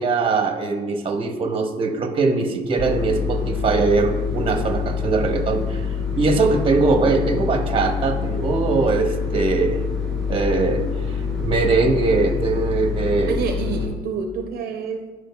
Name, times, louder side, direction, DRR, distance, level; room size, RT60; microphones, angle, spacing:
voice 1, 0.0-5.8 6.2-9.8 10.3-13.4, right 3 dB, 30° right, 4 dB, 0.9 m, -21 dB
sound 1, 2.8-13.9, left 6 dB, 5° left, 1.9 m, -26 dB
voice 2, 13.3-15.1, right 5 dB, 60° right, 4 dB, 0.6 m, -28 dB
11.5 x 4.7 x 2.3 m, 1.3 s
cardioid pair, 110°, 17 cm